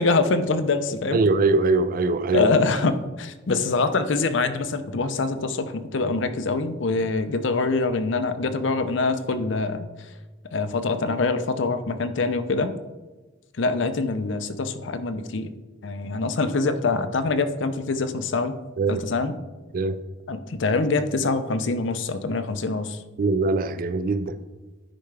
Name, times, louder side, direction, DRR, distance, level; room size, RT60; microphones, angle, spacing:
voice 1, 0.0-1.2 2.3-9.9 10.5-12.7 13.6-15.5 15.8-18.5 18.9-19.3 20.3-23.0, left 3 dB, 65° left, 0.5 m, -24 dB
voice 2, 1.1-2.5 18.8-19.0 19.7-20.0 23.2-24.4, right 3 dB, 45° right, 0.4 m, -22 dB
10.0 x 4.6 x 3.3 m
head